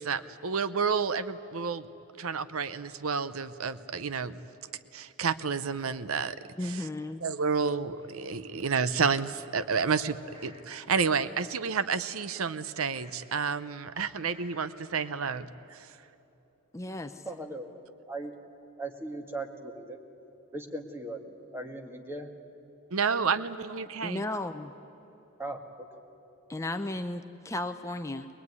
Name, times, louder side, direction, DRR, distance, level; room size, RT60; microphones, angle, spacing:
voice 1, 0.0-1.9 2.2-4.4 4.9-6.4 7.2-10.2 10.4-15.8 22.9-24.2, right 5 dB, 75° right, 14 dB, 0.7 m, -30 dB
voice 2, 6.5-7.2 16.7-17.3 24.0-24.7 26.5-28.3, left 2 dB, 15° left, 7 dB, 0.7 m, -34 dB
sound 1, 8.0-9.2 9.9-10.6 10.9-11.4 11.9-13.2 13.9-14.6 14.9-15.4 15.8-15.9, left 1 dB, 30° right, 4.0 m, -56 dB
voice 3, 17.3-17.7 18.1-18.3 18.8-20.0 20.5-22.3 25.4-25.9, right 2 dB, 10° right, 3 dB, 1.8 m, -38 dB
21.5 x 21.5 x 9.6 m, 3.0 s
head